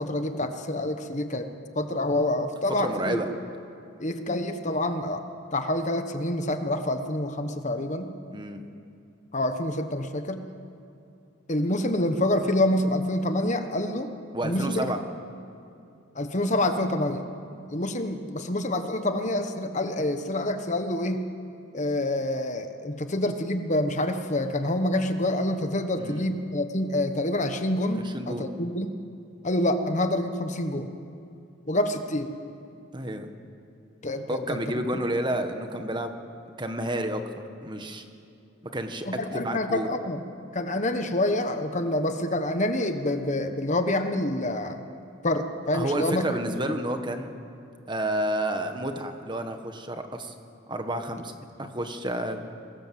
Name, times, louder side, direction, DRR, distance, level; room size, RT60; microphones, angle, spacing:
voice 1, 0.0-1.5 1.7-3.2 4.0-5.3 5.5-8.1 9.3-10.5 11.5-14.1 14.4-14.9 16.1-17.2 17.7-21.3 21.7-29.0 29.4-30.9 31.7-32.3 34.0-34.4 34.7-34.8 39.0-40.2 40.5-44.8 45.2-46.3, left 1 dB, 35° left, 7 dB, 1.3 m, -27 dB
voice 2, 2.8-3.3 8.3-8.6 14.3-15.0 26.0-26.3 28.0-28.5 32.9-33.3 34.3-36.1 36.6-37.2 37.6-38.0 38.7-39.1 39.3-39.9 45.7-47.3 47.9-50.3 50.7-52.4, right 1 dB, 20° right, 6 dB, 1.5 m, -30 dB
28.0 x 20.5 x 7.7 m, 2.6 s
head